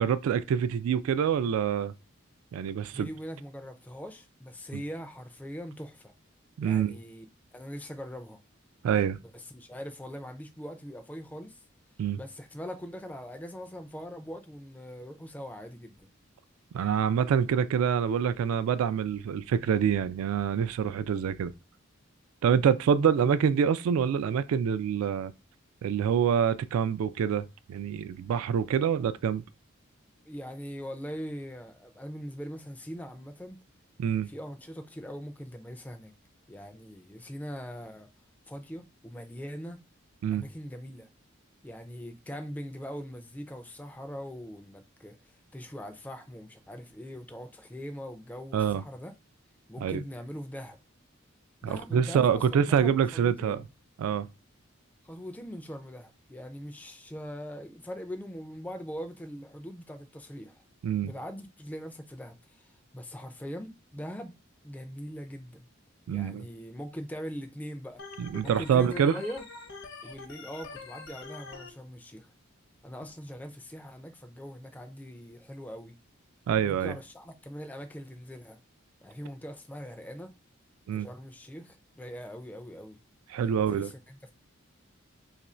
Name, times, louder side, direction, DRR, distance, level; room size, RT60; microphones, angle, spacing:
voice 1, 0.0-1.9 2.5-3.1 4.7-4.8 6.6-6.9 8.8-9.2 12.0-12.2 16.7-21.5 22.4-25.3 25.8-29.4 34.0-34.3 40.2-40.4 48.5-48.8 49.8-50.0 51.6-53.6 54.0-54.3 60.8-61.1 66.1-66.4 68.2-69.1 76.5-76.9 80.9-81.1 83.3-83.9, right 7 dB, 90° right, 0.3 m, -26 dB
voice 2, 2.9-6.1 6.6-7.2 7.5-8.4 9.2-11.6 12.2-16.1 23.2-23.3 30.3-33.6 34.3-36.1 36.5-38.1 38.5-39.8 40.3-41.1 41.6-49.1 49.7-50.8 51.6-53.7 55.0-60.6 61.0-64.3 64.6-65.7 66.1-68.0 68.4-69.4 70.0-72.3 72.8-75.9 76.6-78.6 79.0-80.3 80.9-83.0 83.4-84.3, equal, 10° left, 0.3 m, -41 dB
Organ, 68.0-71.7, left 4 dB, 55° left, 0.6 m, -45 dB
3.0 x 2.4 x 4.2 m
head